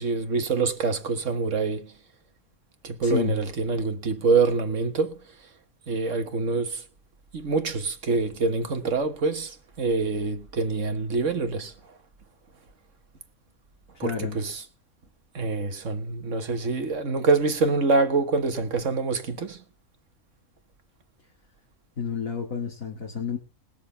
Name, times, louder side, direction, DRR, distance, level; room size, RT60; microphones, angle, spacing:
voice 1, 0.0-1.9 2.8-5.2 5.9-6.8 7.3-11.7 14.0-14.6 15.3-19.6, right 4 dB, 60° right, 1.8 m, -25 dB
voice 2, 3.0-3.3 13.9-14.4 22.0-23.4, left 7 dB, 70° left, 2.6 m, -30 dB
20.5 x 6.9 x 5.6 m
omnidirectional pair, 1.5 m